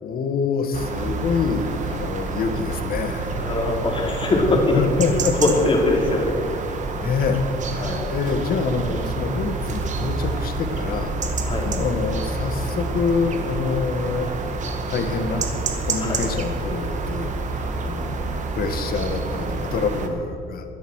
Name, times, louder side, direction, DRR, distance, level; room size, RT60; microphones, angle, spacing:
voice 1, 0.0-3.4 4.7-5.5 7.0-7.4 7.7-11.1 11.7-14.3 14.9-15.5 15.8-17.3 17.8-20.6, left 5 dB, 60° left, 7 dB, 1.9 m, -26 dB
sound 1, 0.7-20.1, right 3 dB, 45° right, 2.0 m, -28 dB
voice 2, 3.4-6.8 7.8-8.1 11.4-11.7 16.0-16.2, left 2 dB, 30° left, 0 dB, 3.8 m, -22 dB
22.5 x 8.1 x 6.6 m, 2.5 s
cardioid pair, 110°, 17 cm